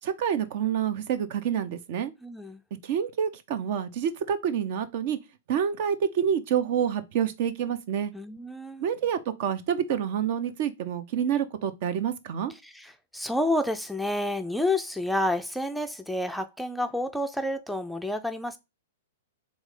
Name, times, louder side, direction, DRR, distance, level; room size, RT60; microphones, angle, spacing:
voice 1, 0.0-2.1 2.8-5.2 5.5-8.1 8.8-12.5, right 8 dB, 50° right, 0.6 m, -28 dB
voice 2, 2.2-2.6 8.1-8.8 12.6-18.6, left 1 dB, ahead, 0.4 m, -29 dB
3.6 x 3.1 x 3.6 m
hypercardioid pair, 110°, 0 cm